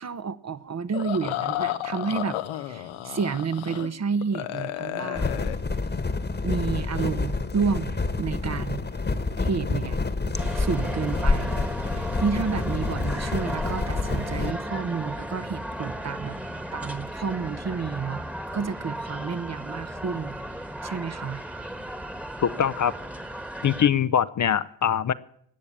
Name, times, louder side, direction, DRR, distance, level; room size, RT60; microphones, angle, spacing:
voice 1, 0.0-5.3 6.4-8.8 9.4-10.0 10.6-11.6 11.9-16.4 16.7-18.2 18.5-20.4 20.8-21.4, right 5 dB, 35° right, 0.9 m, -30 dB
sound 1, 0.9-3.9 4.2-5.6, left 13 dB, 90° left, 1.0 m, -32 dB
sound 2, 5.1-14.5, left 3 dB, 20° left, 1.4 m, -28 dB
sound 3, 10.3-23.9, equal, 5° right, 1.4 m, -35 dB
voice 2, 22.4-22.9 23.6-25.1, left 8 dB, 40° left, 0.7 m, -23 dB
19.0 x 7.0 x 8.8 m
supercardioid pair, 70°, 47 cm